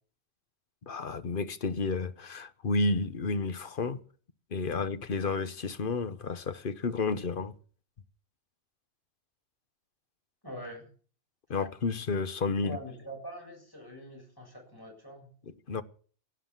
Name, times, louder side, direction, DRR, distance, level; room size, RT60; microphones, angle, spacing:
voice 1, 0.9-4.0 4.5-7.5 11.5-12.8 15.5-15.8, left 3 dB, 50° left, 1.1 m, -31 dB
voice 2, 10.4-10.9 12.6-15.3, equal, 20° left, 7.2 m, -43 dB
17.0 x 9.9 x 7.3 m
omnidirectional pair, 1.2 m